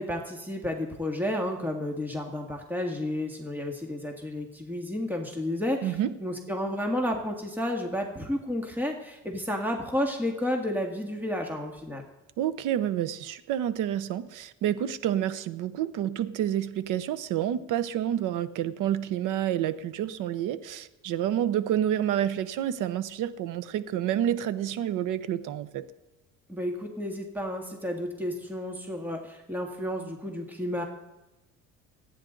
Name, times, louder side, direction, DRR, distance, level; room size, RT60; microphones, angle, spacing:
voice 1, 0.0-5.9 6.2-12.0 26.5-30.8, left 1 dB, 5° right, 2 dB, 1.8 m, -31 dB
voice 2, 5.8-6.1 12.4-25.8, right 11 dB, 70° right, 14 dB, 1.0 m, -29 dB
26.0 x 9.8 x 3.9 m, 0.98 s
cardioid pair, 115°, 32 cm